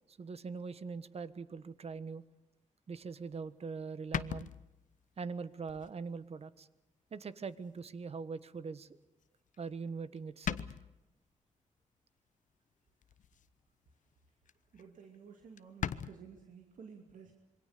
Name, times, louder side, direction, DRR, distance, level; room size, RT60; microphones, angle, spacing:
voice 1, 0.1-2.2 2.9-4.5 5.2-6.7 7.1-8.9 9.6-10.6, right 5 dB, 50° right, 15 dB, 1.3 m, -42 dB
sound 1, 3.3-3.4 4.1-5.0 5.7-5.9 6.4-6.5 7.8-7.9 9.5-9.9 10.2-10.3 10.4-11.1 13.0-13.5 13.9-14.1 14.5-14.6 14.8-14.9 15.1-15.2 15.6-16.1, left 8 dB, 80° left, 0.9 m, -39 dB
voice 2, 14.7-17.3, right 6 dB, 85° right, 3 dB, 2.7 m, -53 dB
27.0 x 23.0 x 6.8 m, 1.0 s
wide cardioid pair, 120°, 13 cm